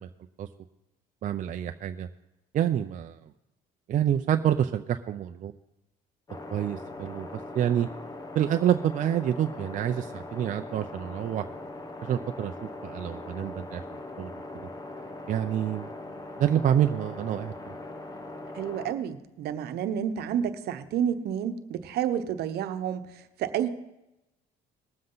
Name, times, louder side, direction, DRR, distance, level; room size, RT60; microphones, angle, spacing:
voice 1, 1.2-2.1 2.5-3.2 3.9-5.5 6.5-7.3 7.5-7.9 8.3-11.4 12.0-13.8 14.2-14.3 14.6-14.7 15.3-15.9 16.4-17.5, right 10 dB, 50° right, 7 dB, 0.5 m, -27 dB
sound 1, 6.3-19.0, left 2 dB, 20° left, 1.1 m, -41 dB
voice 2, 18.5-23.7, right 9 dB, 70° right, 9 dB, 1.0 m, -30 dB
20.0 x 7.6 x 3.9 m, 0.94 s
cardioid pair, 110°, 17 cm